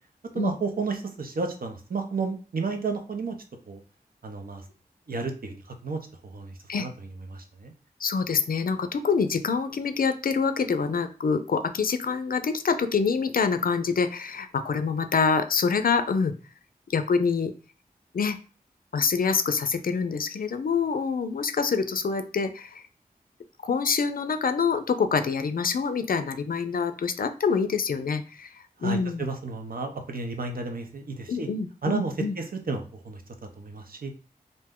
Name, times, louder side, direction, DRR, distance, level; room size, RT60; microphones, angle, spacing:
voice 1, 0.3-3.4 3.7-3.8 4.2-4.6 5.1-6.9 7.3-7.7 28.8-31.5 31.8-33.2 33.6-34.1, right 4 dB, 65° right, 4 dB, 0.6 m, -32 dB
voice 2, 8.0-16.3 16.9-17.5 18.1-18.4 18.9-22.8 23.6-28.5 28.8-29.3 31.3-32.4, left 5 dB, 65° left, 9 dB, 0.4 m, -26 dB
2.6 x 2.1 x 3.6 m, 0.36 s
wide cardioid pair, 50°, 16 cm